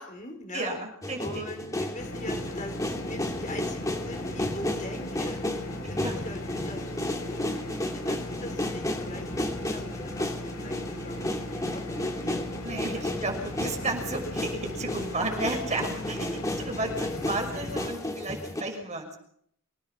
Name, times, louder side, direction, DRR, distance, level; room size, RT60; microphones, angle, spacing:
voice 1, 0.0-0.7 1.2-5.5 5.9-7.4 7.9-11.3 11.5-12.5 12.9-13.3 13.6-13.7 15.4-15.6 16.8-17.0, left 1 dB, 35° left, 5 dB, 4.4 m, -42 dB
voice 2, 0.5-1.5 5.8-6.2 12.6-19.2, right 2 dB, 35° right, 3 dB, 6.1 m, -33 dB
sound 1, 1.0-18.6, left 1 dB, 15° left, 2.6 m, -33 dB
sound 2, 2.0-17.9, left 1 dB, 75° left, 7.8 m, -38 dB
25.5 x 18.0 x 5.8 m, 0.66 s
head